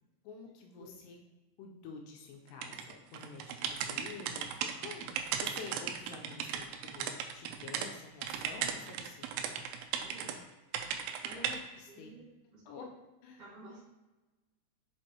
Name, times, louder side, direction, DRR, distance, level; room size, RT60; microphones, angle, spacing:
voice 1, 0.2-1.2 1.6-9.3 11.3-12.1 12.7-12.9 13.2-13.4, left 5 dB, 90° left, 0 dB, 2.4 m, -49 dB
sound 1, 2.6-7.9 8.2-10.3 10.7-11.6, right 8 dB, 85° right, 2.8 m, -37 dB
voice 2, 10.0-10.3 10.8-11.5 11.9-12.2 12.5-12.6 13.4-13.8, right 1 dB, 50° right, -11 dB, 2.1 m, -52 dB
6.4 x 5.2 x 2.9 m, 1.1 s
omnidirectional pair, 5.4 m